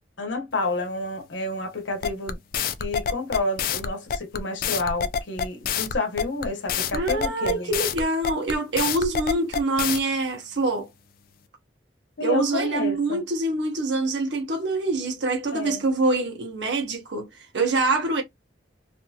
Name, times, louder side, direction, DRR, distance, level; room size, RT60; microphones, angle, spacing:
voice 1, 0.2-2.4 2.8-7.7 12.2-13.2 15.5-15.8, left 2 dB, 85° left, 0.9 m, -29 dB
sound 1, 2.0-10.0, left 7 dB, 50° left, 0.4 m, -27 dB
voice 2, 6.9-10.9 12.2-18.2, right 2 dB, 75° right, 0.8 m, -25 dB
2.7 x 2.6 x 2.3 m
head